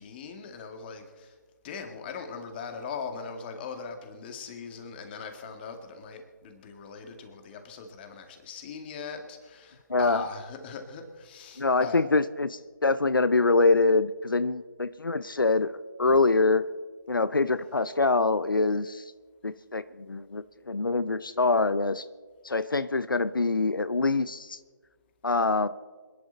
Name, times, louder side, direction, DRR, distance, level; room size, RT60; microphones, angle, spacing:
voice 1, 0.0-1.3 1.6-12.1, left 5 dB, 30° left, 6 dB, 2.1 m, -40 dB
voice 2, 9.9-10.2 11.6-16.6 17.1-19.0 19.4-22.0 22.4-24.6 25.2-25.7, left 3 dB, 90° left, 15 dB, 0.6 m, -25 dB
26.0 x 11.0 x 4.0 m, 1.4 s
figure-of-eight pair, 150°, 11 cm